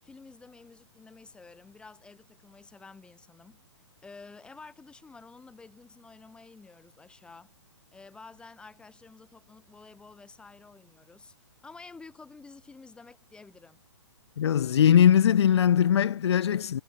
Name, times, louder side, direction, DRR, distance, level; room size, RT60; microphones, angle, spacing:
voice 1, 0.0-3.6 4.0-7.5 7.9-11.3 11.6-13.8, left 4 dB, 5° left, 5.8 m, -50 dB
voice 2, 14.4-16.8, left 9 dB, 60° left, 1.5 m, -21 dB
hypercardioid pair, 155°, 16 cm